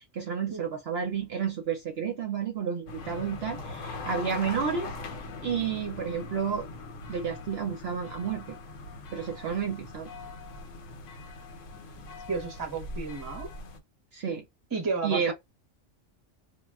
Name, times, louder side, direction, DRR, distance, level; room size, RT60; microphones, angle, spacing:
voice 1, 0.0-4.9 5.4-6.7 7.1-8.6 9.1-10.1 14.1-14.4 15.0-15.3, right 7 dB, 60° right, 0.7 m, -31 dB
sound 1, 2.9-13.8, left 2 dB, 75° left, 1.0 m, -41 dB
voice 2, 12.3-13.5 14.7-15.3, right 4 dB, 20° right, 0.6 m, -32 dB
2.2 x 2.1 x 3.4 m
omnidirectional pair, 1.3 m